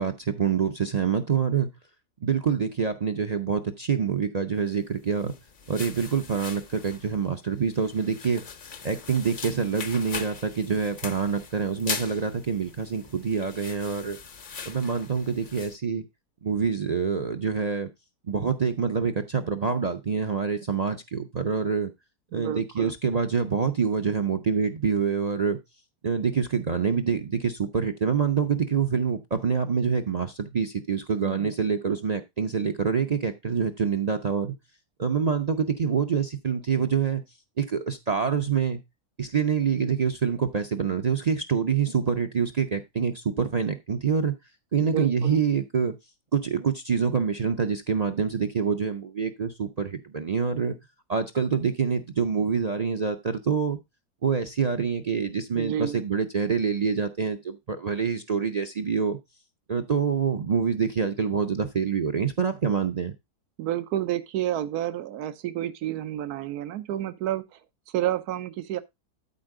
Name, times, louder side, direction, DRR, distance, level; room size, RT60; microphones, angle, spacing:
voice 1, 0.0-1.7 2.2-5.3 5.7-8.4 8.8-14.2 14.7-16.0 16.4-17.9 18.3-21.9 22.3-25.6 26.0-34.6 35.0-37.2 37.6-38.8 39.2-44.3 44.7-46.0 46.3-50.8 51.1-53.8 54.2-59.2 59.7-63.1, right 6 dB, 50° right, 0.5 m, -26 dB
sound 1, 5.0-15.8, left 6 dB, 45° left, 0.7 m, -40 dB
voice 2, 22.3-22.9 31.2-31.5 31.8-32.0 44.8-45.4 55.5-56.0 63.6-67.6 67.9-68.8, right 12 dB, 85° right, 1.2 m, -30 dB
13.0 x 4.4 x 3.7 m
omnidirectional pair, 1.6 m